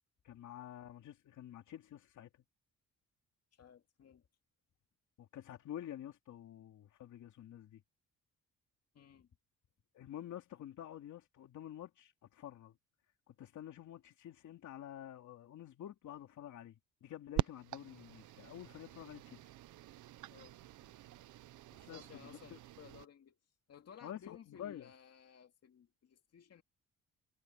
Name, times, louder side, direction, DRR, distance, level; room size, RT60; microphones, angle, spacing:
voice 1, 0.2-2.3 5.2-7.8 9.9-12.8 13.3-19.4 21.9-22.2 22.5-22.6 24.0-24.9, left 11 dB, 70° left, 2.8 m, -49 dB
voice 2, 3.5-4.3 8.9-9.3 20.3-20.6 20.8-20.9 21.7-23.4 23.7-26.6, left 8 dB, 55° left, 2.6 m, -57 dB
sound 1, 17.4-23.1, right 15 dB, 80° right, 1.0 m, -44 dB
cardioid pair, 90°, 30 cm